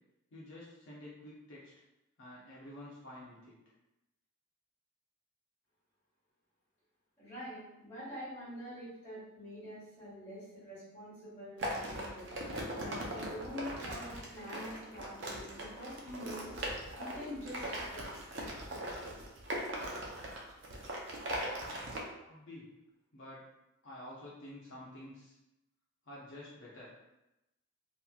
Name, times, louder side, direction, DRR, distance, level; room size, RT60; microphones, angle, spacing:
voice 1, 0.3-1.7 2.2-3.5 22.2-22.7 23.1-23.4 23.8-25.4 26.1-26.9, left 1 dB, 55° left, -7 dB, 0.5 m, -49 dB
voice 2, 7.2-12.3 12.7-16.5 16.9-18.0, equal, 10° left, -12 dB, 1.3 m, -46 dB
sound 1, 11.6-22.0, right 1 dB, 55° right, 0.5 m, -40 dB
2.8 x 2.4 x 2.2 m, 0.93 s
head